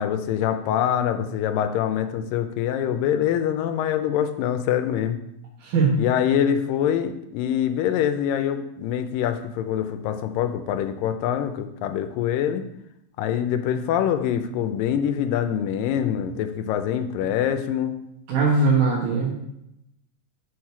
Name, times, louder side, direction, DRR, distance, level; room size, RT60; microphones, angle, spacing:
voice 1, 0.0-5.2 6.0-12.6 13.2-18.0, left 9 dB, 90° left, 8 dB, 2.3 m, -24 dB
voice 2, 5.6-5.9 18.3-19.5, right 4 dB, 70° right, -5 dB, 2.7 m, -20 dB
6.4 x 6.3 x 5.9 m, 0.82 s
omnidirectional pair, 3.9 m